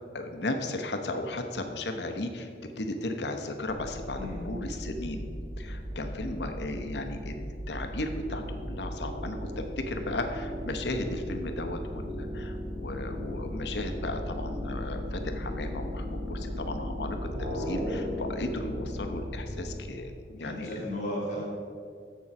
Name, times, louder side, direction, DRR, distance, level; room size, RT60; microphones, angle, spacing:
voice 1, 0.1-2.5 2.8-5.3 5.6-20.8, left 2 dB, 75° left, 5 dB, 0.9 m, -35 dB
sound 1, 3.7-19.8, equal, 50° right, 1.6 m, -36 dB
voice 2, 20.4-21.4, equal, 45° left, -5 dB, 1.9 m, -34 dB
7.4 x 7.0 x 5.9 m, 2.1 s
head